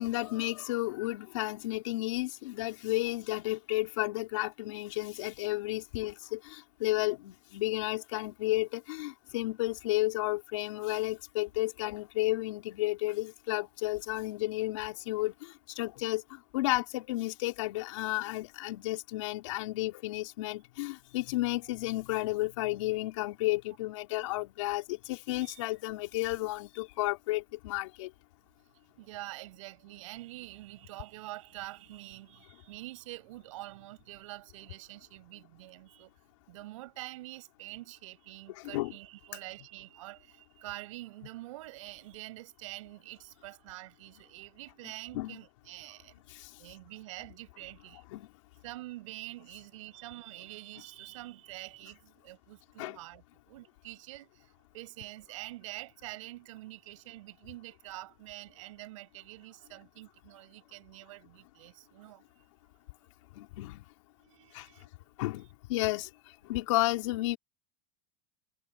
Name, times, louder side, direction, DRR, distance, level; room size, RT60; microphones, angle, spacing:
voice 1, 0.0-28.1 38.6-38.9 45.1-45.4 46.3-46.5 48.1-48.3 52.8-53.0 63.3-63.8 64.5-64.7 65.2-66.1 66.4-67.4, left 19 dB, 70° left, 4.1 m, -32 dB
voice 2, 29.0-36.1 36.5-46.2 46.6-48.0 48.6-62.2 62.7-62.8 64.2-65.1, right 18 dB, 70° right, 6.9 m, -46 dB
supercardioid pair, 180°, 17 cm